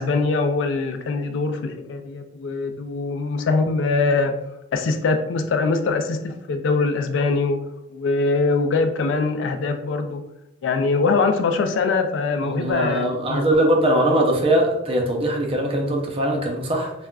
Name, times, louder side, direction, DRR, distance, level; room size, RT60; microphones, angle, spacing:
voice 1, 0.0-4.3 4.7-7.6 7.9-10.2 10.6-13.5, left 3 dB, 70° left, 7 dB, 0.3 m, -22 dB
voice 2, 12.4-16.9, right 1 dB, 30° right, 1 dB, 0.5 m, -21 dB
3.4 x 2.1 x 2.3 m, 0.87 s
head